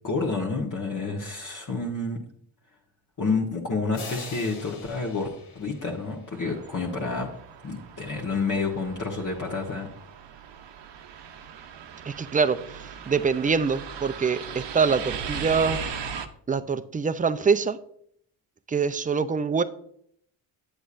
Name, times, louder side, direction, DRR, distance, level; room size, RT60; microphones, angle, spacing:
voice 1, 0.0-2.2 3.2-5.3 5.5-7.3 7.6-9.9, left 3 dB, 40° left, -2 dB, 1.2 m, -29 dB
sound 1, 3.9-6.8, left 3 dB, 85° left, 1.6 m, -43 dB
sound 2, 6.3-16.3, right 6 dB, 65° right, 0.8 m, -38 dB
voice 2, 12.0-15.8 16.5-17.8 18.7-19.6, right 5 dB, 20° right, 12 dB, 0.4 m, -24 dB
8.3 x 7.8 x 2.5 m, 0.67 s
cardioid pair, 65°, 47 cm